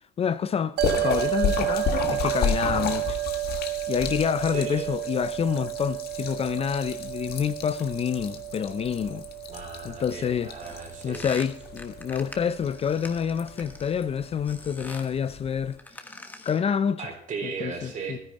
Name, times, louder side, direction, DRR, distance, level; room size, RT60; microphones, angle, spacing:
voice 1, 0.2-3.2 3.9-9.2 9.8-10.5 11.0-16.1 16.4-17.1 17.4-18.2, left 7 dB, 35° left, 0.5 m, -28 dB
Splash splatter, 0.8-15.8, left 8 dB, 70° left, 1.5 m, -34 dB
sound 1, 0.8-13.3, right 17 dB, 70° right, 0.8 m, -32 dB
voice 2, 4.5-4.9 9.5-11.3 17.0-18.2, right 5 dB, 50° right, 3.8 m, -36 dB
sound 2, 10.6-14.0 14.5-15.2 15.7-16.7, left 2 dB, 10° left, 1.3 m, -44 dB
13.0 x 10.0 x 4.1 m
cardioid pair, 110°, 17 cm